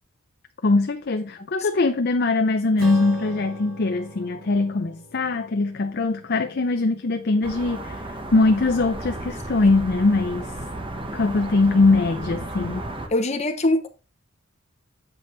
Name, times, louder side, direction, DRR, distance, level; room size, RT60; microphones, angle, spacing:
voice 1, 0.6-10.5 11.1-12.8, left 3 dB, 50° left, 0.6 m, -22 dB
Acoustic guitar / Strum, 2.8-7.5, right 2 dB, 75° right, 3.7 m, -41 dB
sound 1, 7.4-13.1, right 1 dB, 25° right, 1.2 m, -34 dB
voice 2, 13.1-13.9, left 1 dB, 35° left, 0.9 m, -22 dB
8.3 x 5.3 x 3.9 m
head